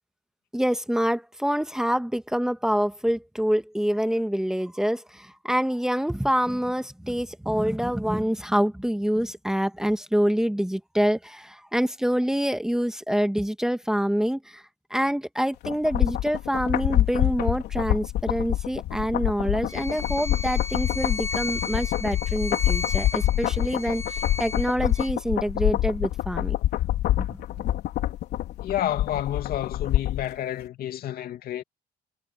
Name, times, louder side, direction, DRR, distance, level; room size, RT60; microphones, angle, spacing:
voice 1, 0.5-14.6 14.9-26.6 27.2-27.4, equal, 5° right, 1.5 m, -26 dB
sound 1, 15.6-30.3 30.6-30.7, left 14 dB, 80° left, 3.9 m, -26 dB
Bowed string instrument, 19.7-25.1, left 3 dB, 15° left, 4.1 m, -35 dB
voice 2, 28.6-31.6, left 12 dB, 65° left, 2.4 m, -30 dB
cardioid pair, 110°, 17 cm